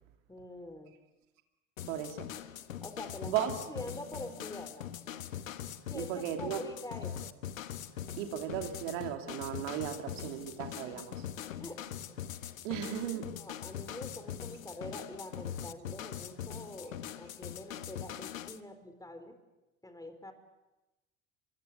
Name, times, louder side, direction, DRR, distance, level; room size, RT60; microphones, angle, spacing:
voice 1, 0.3-0.9 2.8-4.9 5.9-7.3 9.9-10.0 10.4-12.2 13.4-19.4 19.8-20.3, left 1 dB, 10° left, 9 dB, 4.1 m, -46 dB
sound 1, 1.8-18.6, left 10 dB, 80° left, 1.2 m, -42 dB
voice 2, 1.9-2.3 3.3-3.5 5.9-6.6 8.2-11.2 12.6-13.3, right 11 dB, 65° right, 5 dB, 2.9 m, -36 dB
24.5 x 24.5 x 8.1 m, 1.0 s
hypercardioid pair, 70°, 39 cm